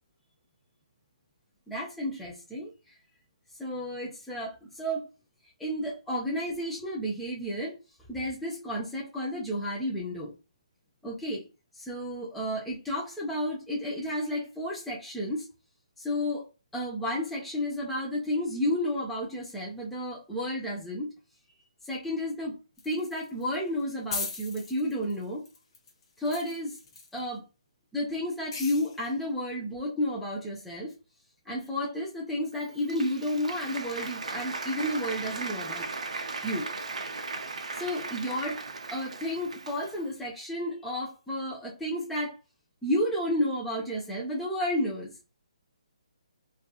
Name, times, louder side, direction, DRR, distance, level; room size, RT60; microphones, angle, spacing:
voice 1, 1.7-2.9 3.6-5.0 5.6-7.8 8.1-10.3 11.0-11.4 11.7-15.5 16.0-21.1 21.8-22.5 22.8-25.4 26.2-26.8 27.1-27.4 27.9-30.9 31.5-35.9 36.4-36.7 37.7-38.6 38.9-42.4 42.8-45.1, left 1 dB, ahead, -5 dB, 0.4 m, -32 dB
sound 1, 22.8-23.5 23.8-23.9 24.1-27.2 28.5-29.1, left 4 dB, 45° left, 0.7 m, -38 dB
Applause, 32.5-40.1, right 3 dB, 75° right, 0.5 m, -37 dB
2.6 x 2.4 x 2.3 m, 0.30 s
hypercardioid pair, 155°, 4 cm